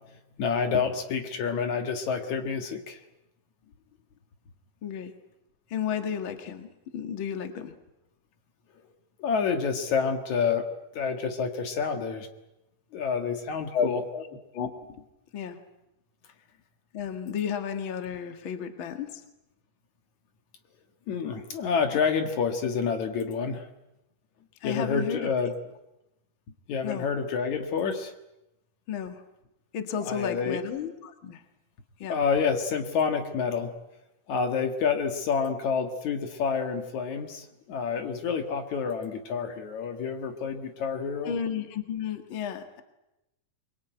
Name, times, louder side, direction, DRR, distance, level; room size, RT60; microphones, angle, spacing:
voice 1, 0.1-3.0 9.2-10.7 10.9-12.3 12.9-14.0 21.1-23.7 24.6-25.5 26.7-28.1 30.0-30.6 32.1-33.7 34.3-41.4, left 6 dB, 65° left, 6 dB, 2.9 m, -28 dB
voice 2, 4.8-5.1 5.7-7.7 13.7-14.7 15.3-15.6 16.9-19.2 24.6-25.2 26.8-27.1 28.9-29.2 29.7-31.4 32.0-32.2 41.3-42.8, left 7 dB, 45° left, 7 dB, 2.3 m, -32 dB
24.0 x 22.5 x 9.2 m, 0.92 s
omnidirectional pair, 3.7 m